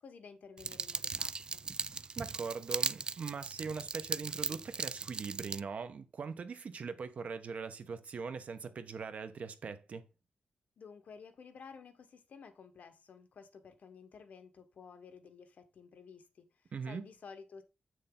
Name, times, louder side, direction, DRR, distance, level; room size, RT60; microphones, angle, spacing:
voice 1, 0.0-1.6 10.8-17.6, left 5 dB, 65° left, 1.2 m, -53 dB
sound 1, 0.6-5.6, right 4 dB, 30° right, 0.3 m, -38 dB
voice 2, 2.2-10.0 16.7-17.0, right 5 dB, 55° right, 1.0 m, -41 dB
7.9 x 6.5 x 3.8 m
wide cardioid pair, 155°, 3 cm